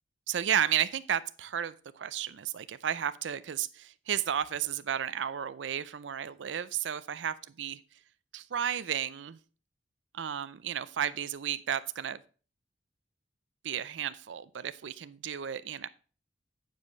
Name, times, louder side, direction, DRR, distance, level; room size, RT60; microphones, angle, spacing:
voice 1, 0.3-7.8 8.3-9.4 10.1-12.2 13.6-15.9, right 9 dB, 75° right, 15 dB, 0.5 m, -33 dB
9.3 x 5.0 x 5.3 m, 0.38 s
head